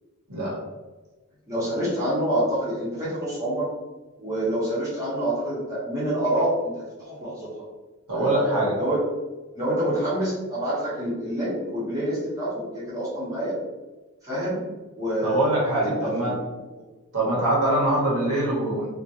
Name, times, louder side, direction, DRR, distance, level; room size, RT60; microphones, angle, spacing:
voice 1, 1.5-3.7 4.2-7.5 8.1-9.0 9.5-13.5 14.2-14.6 15.0-15.5 15.8-16.3 16.7-16.8, right 1 dB, 15° right, -10 dB, 0.9 m, -27 dB
voice 2, 8.1-8.8 15.2-16.3 17.1-18.9, right 1 dB, 75° right, -4 dB, 0.9 m, -23 dB
2.4 x 2.1 x 2.8 m, 1.2 s
head